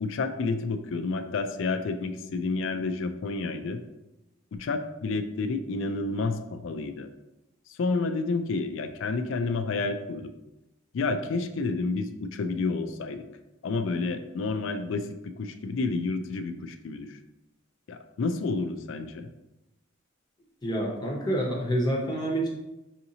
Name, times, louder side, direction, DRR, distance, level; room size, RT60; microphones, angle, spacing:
voice 1, 0.0-3.8 4.5-7.1 7.7-10.3 10.9-13.2 13.6-17.2 17.9-19.3, left 3 dB, 65° left, 9 dB, 0.4 m, -30 dB
voice 2, 20.6-22.5, right 1 dB, 20° left, -2 dB, 0.6 m, -27 dB
5.6 x 2.8 x 2.7 m, 0.96 s
head